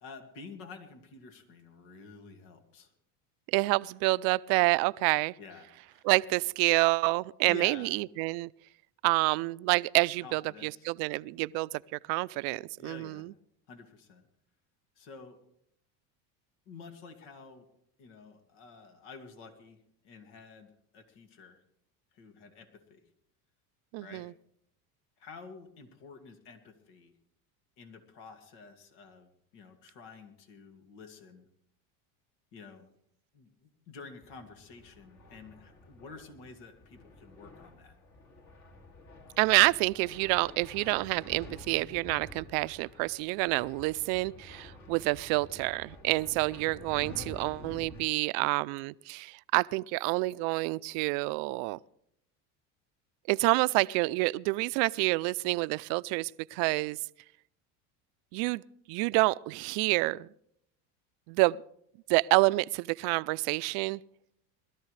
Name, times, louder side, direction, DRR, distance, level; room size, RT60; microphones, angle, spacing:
voice 1, 0.0-2.9 5.4-6.1 7.4-7.9 10.2-10.9 12.8-13.3 13.7-14.3 15.0-15.4 16.7-17.7 18.0-19.8 20.0-21.6 22.1-23.0 24.0-24.3 25.2-27.1 27.8-31.5 32.5-32.9 33.3-38.0, left 4 dB, 70° left, 2.4 m, -49 dB
voice 2, 3.5-5.3 6.0-8.5 9.0-13.3 23.9-24.3 39.4-51.8 53.3-57.0 58.3-58.6 58.9-60.3 61.3-61.6 62.1-64.0, right 24 dB, 65° right, 0.5 m, -28 dB
sound 1, 34.2-48.0, left 1 dB, 40° left, 2.6 m, -50 dB
21.5 x 13.5 x 3.3 m
supercardioid pair, 105°, 42 cm